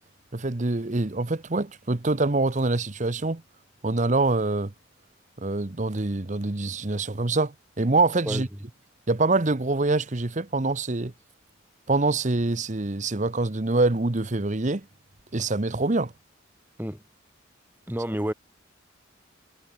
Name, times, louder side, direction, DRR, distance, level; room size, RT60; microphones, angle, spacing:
voice 1, 0.3-3.4 3.8-4.7 5.4-8.5 9.1-11.1 11.9-14.8 15.3-16.1, right 2 dB, 35° right, 0.9 m, -25 dB
voice 2, 17.9-18.3, equal, 10° right, 1.5 m, -29 dB
head